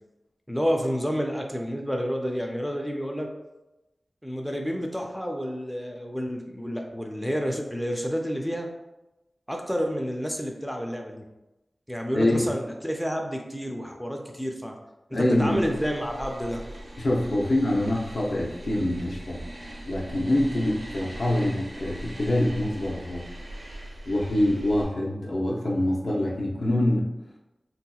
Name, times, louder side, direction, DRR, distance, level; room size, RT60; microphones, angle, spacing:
voice 1, 0.5-3.3 4.2-8.7 9.5-11.2 11.9-14.8 15.1-16.6, equal, ahead, 2 dB, 0.4 m, -29 dB
voice 2, 12.1-12.5 15.1-15.6 17.0-19.4 19.9-23.3 24.1-27.1, left 1 dB, 75° left, -3 dB, 0.6 m, -25 dB
sound 1, 15.3-24.8, right 1 dB, 85° right, 0.8 m, -41 dB
3.5 x 2.8 x 2.3 m, 1.0 s
wide cardioid pair, 80°, 0 cm